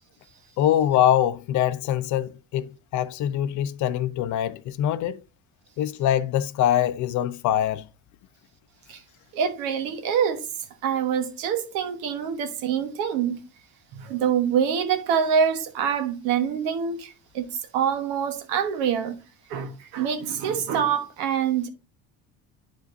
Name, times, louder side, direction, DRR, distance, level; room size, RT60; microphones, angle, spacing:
voice 1, 0.6-5.2 5.8-7.8, left 11 dB, 60° left, 0.6 m, -23 dB
voice 2, 9.3-10.4 10.8-13.4 14.0-17.5 17.7-19.1 19.5-21.7, right 7 dB, 90° right, 1.3 m, -25 dB
9.3 x 5.1 x 2.7 m
cardioid pair, 105°, 32 cm